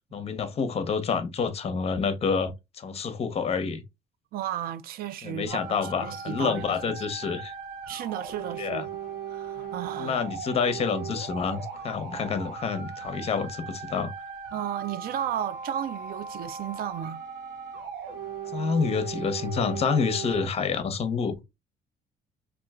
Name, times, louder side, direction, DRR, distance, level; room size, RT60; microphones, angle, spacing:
voice 1, 0.1-3.8 5.2-7.5 8.6-8.8 10.0-14.1 18.5-21.3, left 5 dB, 35° left, 0.6 m, -28 dB
voice 2, 4.3-7.1 7.9-8.9 9.3-10.2 12.3-12.4 14.5-17.2, right 10 dB, 60° right, 0.4 m, -34 dB
sound 1, 5.5-20.5, right 6 dB, 85° right, 0.7 m, -38 dB
3.0 x 2.4 x 2.3 m
cardioid pair, 110°, 17 cm